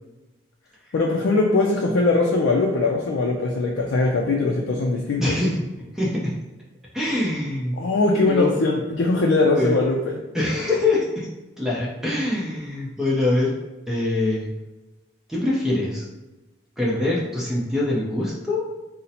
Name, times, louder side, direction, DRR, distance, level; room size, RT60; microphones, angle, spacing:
voice 1, 0.9-5.4 7.8-10.2, left 3 dB, 80° left, 0 dB, 0.4 m, -21 dB
voice 2, 5.2-5.6 5.9-6.3 6.9-7.8 8.3-8.5 9.6-9.8 10.3-11.3 11.6-13.5 13.9-14.5 15.3-16.1 16.8-18.7, left 2 dB, 5° right, -5 dB, 0.5 m, -23 dB
2.7 x 2.1 x 4.0 m, 1.1 s
head